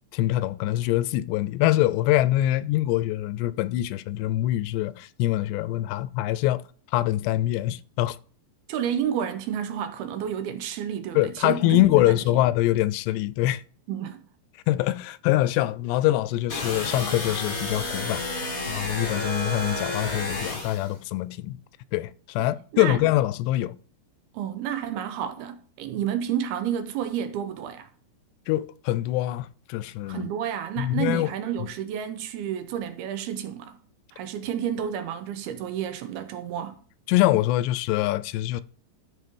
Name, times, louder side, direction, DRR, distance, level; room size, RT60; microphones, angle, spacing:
voice 1, 0.1-6.6 6.9-8.2 11.2-13.6 14.7-21.6 21.9-23.8 28.5-30.3 30.8-31.3 37.1-38.6, left 15 dB, 85° left, 2.7 m, -24 dB
voice 2, 8.7-12.1 13.9-14.2 22.4-23.0 24.3-27.9 30.1-33.8 34.2-36.8, right 9 dB, 80° right, 2.5 m, -30 dB
sound 1, 16.5-20.9, left 2 dB, 70° left, 0.8 m, -31 dB
12.5 x 5.3 x 5.4 m
omnidirectional pair, 4.9 m